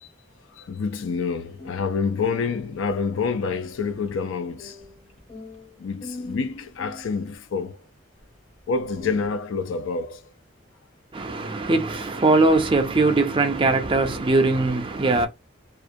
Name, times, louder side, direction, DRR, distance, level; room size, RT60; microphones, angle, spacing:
voice 1, 0.6-4.8 5.8-7.8 8.7-10.2, left 5 dB, 80° left, 0.4 m, -27 dB
sound 1, 1.5-7.4 8.2-8.3 8.7-9.4, left 2 dB, 30° left, 0.6 m, -43 dB
voice 2, 11.1-15.3, right 3 dB, 25° right, 0.4 m, -21 dB
2.4 x 2.1 x 2.6 m
head